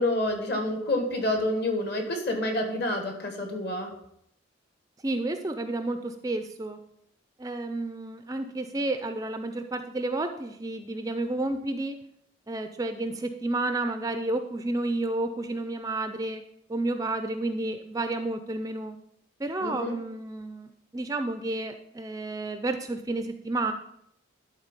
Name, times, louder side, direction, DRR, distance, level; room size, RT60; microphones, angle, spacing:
voice 1, 0.0-3.9 19.6-20.0, left 1 dB, 50° left, 4 dB, 1.5 m, -28 dB
voice 2, 5.0-6.8 7.4-12.0 12.5-16.4 16.7-19.0 19.4-23.7, right 2 dB, 15° right, 8 dB, 0.4 m, -31 dB
11.0 x 4.0 x 5.2 m, 0.74 s
head